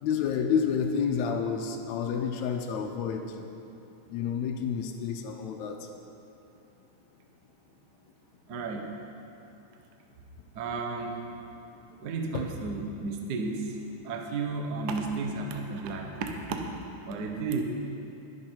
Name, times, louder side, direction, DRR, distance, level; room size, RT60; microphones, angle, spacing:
voice 1, 0.0-3.2 4.1-5.9 12.3-12.4, left 7 dB, 80° left, 3 dB, 2.0 m, -29 dB
voice 2, 8.5-8.9 10.5-11.2 12.0-13.7 14.0-16.6 17.0-17.6, right 4 dB, 75° right, 3 dB, 0.9 m, -33 dB
21.5 x 7.4 x 4.4 m, 2.7 s
omnidirectional pair, 3.4 m